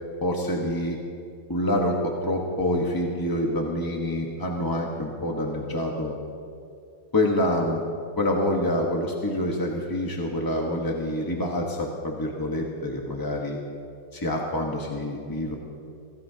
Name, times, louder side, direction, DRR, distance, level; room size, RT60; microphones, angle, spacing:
voice 1, 0.2-1.0 1.5-6.1 7.1-7.8 8.2-13.6 14.1-15.5, left 1 dB, 15° left, -1 dB, 0.8 m, -26 dB
24.5 x 17.5 x 2.8 m, 2.5 s
omnidirectional pair, 2.1 m